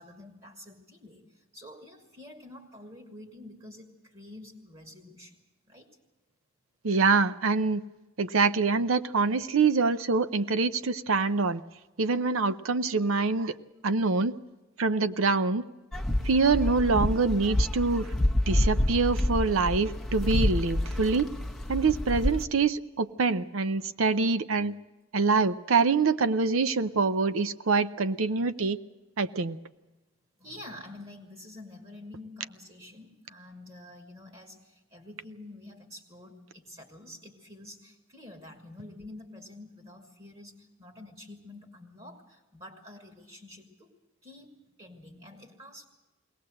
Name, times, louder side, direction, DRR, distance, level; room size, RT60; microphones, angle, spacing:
voice 1, 0.0-5.4 5.7-5.9 30.4-43.9 44.2-45.9, left 1 dB, 30° right, 3 dB, 2.3 m, -48 dB
voice 2, 6.8-7.8 8.2-11.6 12.0-13.5 13.8-14.4 14.8-15.6 16.2-18.1 18.5-21.3 21.7-24.8 25.1-28.8 29.2-29.6, right 4 dB, 75° right, 13 dB, 0.7 m, -25 dB
sound 1, 15.9-22.4, left 1 dB, ahead, 1.2 m, -28 dB
22.0 x 18.0 x 7.8 m, 1.1 s
head